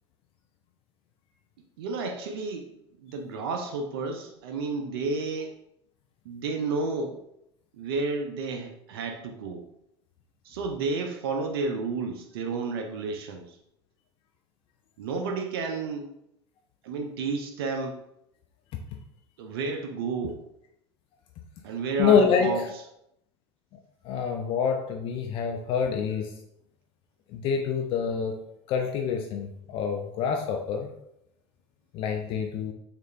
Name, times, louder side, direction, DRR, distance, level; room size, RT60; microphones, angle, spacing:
voice 1, 1.8-2.7 3.0-5.6 6.2-7.2 7.7-9.7 10.4-13.6 15.0-16.1 16.8-18.0 19.4-20.4 21.6-22.8, right 4 dB, 60° right, 4 dB, 0.5 m, -31 dB
voice 2, 22.0-22.5 24.0-26.3 27.3-28.3 28.7-30.9 31.9-32.7, left 6 dB, 40° left, 3 dB, 0.4 m, -26 dB
6.2 x 2.5 x 2.2 m, 0.79 s
figure-of-eight pair, 75°, 14 cm